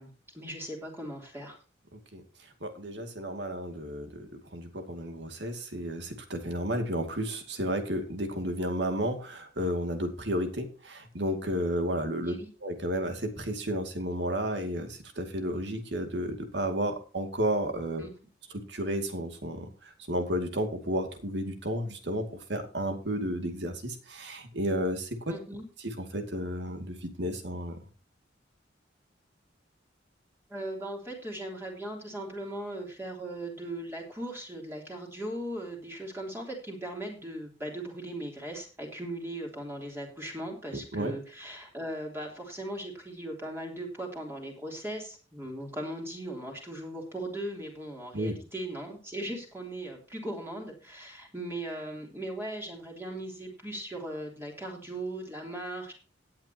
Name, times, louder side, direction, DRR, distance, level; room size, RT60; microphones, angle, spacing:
voice 1, 0.0-1.6 12.2-12.5 18.0-18.1 25.3-25.6 30.5-55.9, right 1 dB, 15° right, -1 dB, 3.2 m, -38 dB
voice 2, 2.6-18.0 18.7-25.3 25.8-27.8 40.9-41.1 48.1-48.4, equal, 65° right, 6 dB, 2.3 m, -32 dB
17.5 x 9.0 x 2.9 m, 0.34 s
head